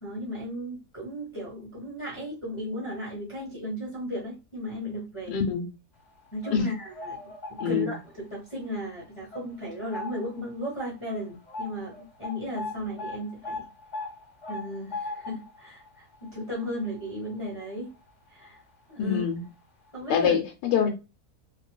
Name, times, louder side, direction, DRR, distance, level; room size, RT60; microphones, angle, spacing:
voice 1, 0.0-5.4 6.3-13.6 14.5-17.9 18.3-18.6 18.9-19.2 19.9-20.3, left 1 dB, 20° left, 1.0 m, -35 dB
voice 2, 5.3-5.6 6.5-6.7 7.6-7.9 19.0-19.4 20.1-20.9, left 7 dB, 85° left, 1.2 m, -25 dB
sound 1, 6.2-8.2 8.6-8.8 9.3-10.4 10.7-10.8 11.1-18.1 18.4-18.6 19.4-19.5 19.9-20.0, left 3 dB, 40° left, 0.7 m, -40 dB
3.1 x 2.7 x 2.2 m
omnidirectional pair, 1.7 m